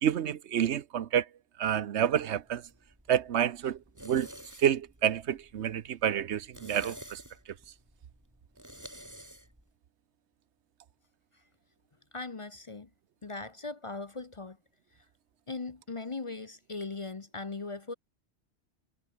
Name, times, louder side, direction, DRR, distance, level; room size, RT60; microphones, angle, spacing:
voice 1, 0.0-1.2 1.6-2.6 3.1-3.8 4.0-4.3 4.6-7.2, right 9 dB, 80° right, 1.1 m, -28 dB
sound 1, 2.3-9.7, equal, 15° right, 6.0 m, -51 dB
voice 2, 12.1-12.9 13.2-14.6 14.9-15.0 15.5-17.9, left 3 dB, 30° left, 0.8 m, -39 dB
omnidirectional pair, 1.2 m